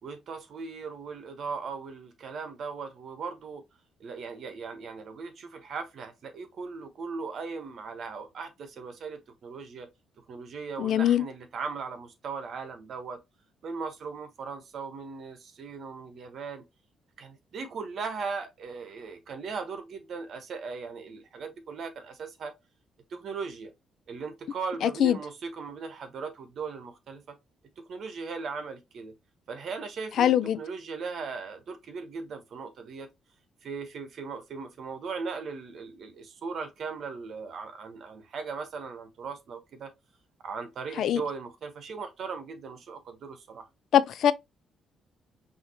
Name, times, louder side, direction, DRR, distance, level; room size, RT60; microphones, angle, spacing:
voice 1, 0.0-3.6 4.0-9.9 10.2-13.2 13.6-16.6 17.2-22.5 23.1-23.7 24.1-27.4 27.8-29.1 29.5-33.1 33.6-39.9 40.4-43.7, right 5 dB, 60° right, 1.2 m, -38 dB
voice 2, 10.8-11.2 25.0-25.1 30.2-30.6 41.0-41.2 43.9-44.3, left 10 dB, 70° left, 0.4 m, -22 dB
5.7 x 2.9 x 2.9 m
cardioid pair, 90°, 0 cm